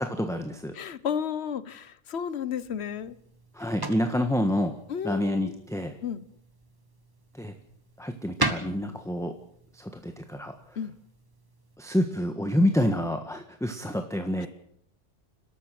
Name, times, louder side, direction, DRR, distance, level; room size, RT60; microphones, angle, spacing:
voice 1, 0.0-0.7 3.5-4.7 5.0-5.9 7.4-7.5 8.0-9.3 9.7-10.5 11.8-14.5, left 1 dB, 5° left, 5 dB, 1.4 m, -28 dB
voice 2, 0.7-3.2 4.9-5.5 6.0-6.3 8.8-9.0 10.8-10.9 14.4-14.5, left 8 dB, 60° left, 16 dB, 1.2 m, -33 dB
sound 1, 2.6-11.8, right 2 dB, 20° right, 1.6 m, -39 dB
29.0 x 13.0 x 7.6 m, 0.71 s
omnidirectional pair, 1.2 m